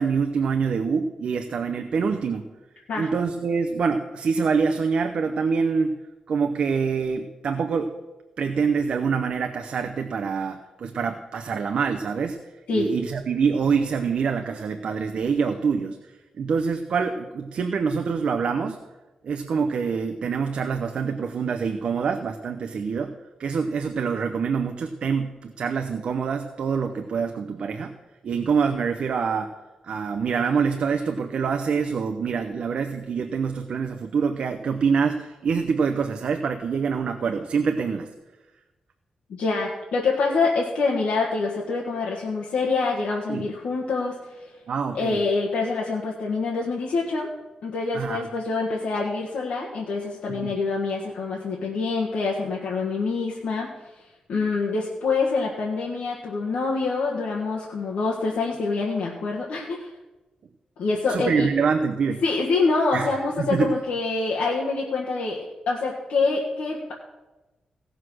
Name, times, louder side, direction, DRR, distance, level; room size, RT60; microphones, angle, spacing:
voice 1, 0.0-2.5 3.0-5.9 6.3-7.9 8.4-12.4 12.7-16.0 16.4-18.8 19.2-23.1 23.4-27.9 28.2-29.5 29.8-38.1 43.3-43.4 44.7-45.2 47.9-48.3 50.3-50.5 61.1-62.2 62.9-63.8, right 5 dB, 50° right, 6 dB, 0.7 m, -25 dB
voice 2, 39.3-44.5 44.9-47.3 47.6-53.7 54.3-59.9 60.8-61.5 62.2-66.9, left 4 dB, 85° left, -3 dB, 1.5 m, -26 dB
16.5 x 6.2 x 6.3 m, 1.1 s
wide cardioid pair, 180°, 2 cm